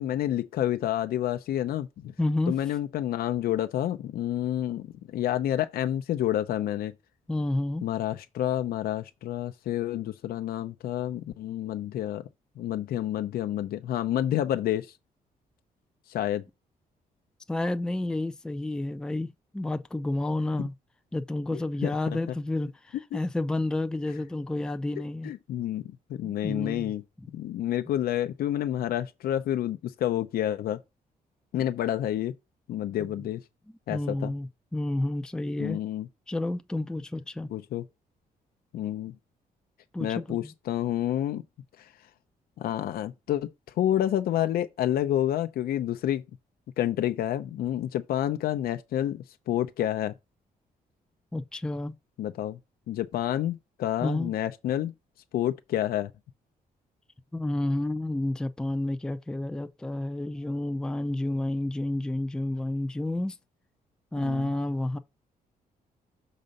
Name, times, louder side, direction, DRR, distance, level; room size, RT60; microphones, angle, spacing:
voice 1, 0.0-2.1 2.5-6.9 7.8-12.3 12.6-14.9 16.1-16.4 20.6-20.7 21.5-22.2 23.1-23.2 25.2-27.0 27.3-30.8 31.5-32.3 32.7-33.4 33.9-34.3 35.6-36.1 37.5-37.8 38.7-39.1 40.0-41.4 41.8-41.9 42.6-46.2 46.8-50.1 52.2-52.6 52.9-54.9 55.3-56.1 64.1-64.5, left 12 dB, 80° left, 0.6 m, -29 dB
voice 2, 2.2-2.6 7.3-7.8 17.5-20.7 21.1-25.3 26.2-26.9 33.2-33.3 33.9-35.8 36.3-37.5 39.9-40.5 51.3-51.9 54.0-54.3 57.3-63.4 64.1-65.0, left 1 dB, 5° left, 0.5 m, -30 dB
6.5 x 3.9 x 5.3 m
cardioid pair, 145°, 15 cm